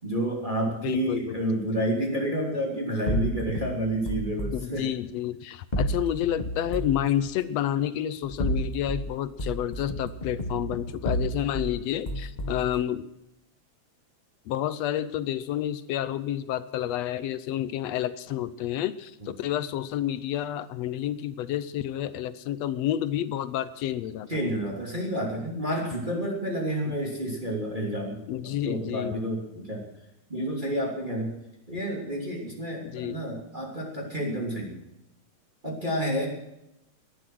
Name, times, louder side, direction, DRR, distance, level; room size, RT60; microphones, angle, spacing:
voice 1, 0.0-4.9 24.3-29.8 30.3-31.3 31.7-34.8 35.6-36.3, equal, 15° right, -1 dB, 3.1 m, -30 dB
voice 2, 0.7-1.4 4.5-13.0 14.5-24.3 26.9-27.0 28.3-29.1 32.9-33.2, left 11 dB, 75° left, 15 dB, 1.7 m, -29 dB
sound 1, 3.1-4.6 5.7-7.0 8.2-9.1 9.4-11.7 12.1-12.7, right 1 dB, 50° left, 0.5 m, -30 dB
18.0 x 11.5 x 6.2 m, 0.86 s
omnidirectional pair, 3.4 m